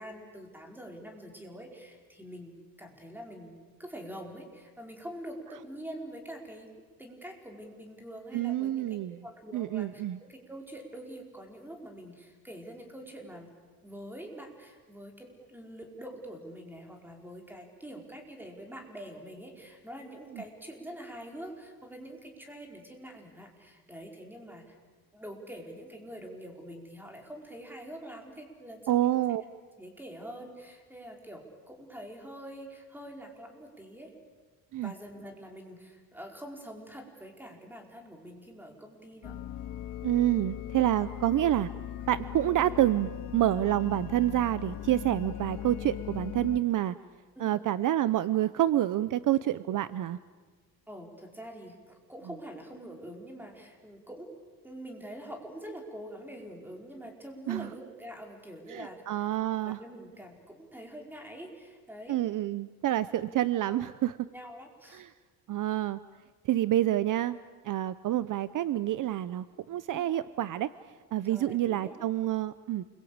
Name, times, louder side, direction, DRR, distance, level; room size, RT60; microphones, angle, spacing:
voice 1, 0.0-6.7 7.0-8.9 9.2-13.5 13.8-24.8 25.1-29.1 29.8-34.1 34.8-39.4 47.3-47.6 50.9-54.4 54.6-59.0 59.6-62.2 63.0-63.3 63.7-63.8 64.3-65.0 69.9-70.1 71.2-71.9, equal, 5° right, 2 dB, 4.8 m, -45 dB
voice 2, 8.3-9.2 9.5-10.2 20.3-20.4 28.9-29.4 34.7-34.9 40.0-41.7 42.1-46.9 47.4-50.2 57.5-57.7 58.7-59.8 62.1-64.3 64.9-65.1 65.5-66.0 66.4-67.4 67.6-70.7 71.1-72.8, right 13 dB, 55° right, 15 dB, 0.7 m, -28 dB
sound 1, 39.2-46.6, left 11 dB, 65° left, 1.7 m, -39 dB
28.5 x 23.0 x 8.8 m, 1.4 s
cardioid pair, 135°, 37 cm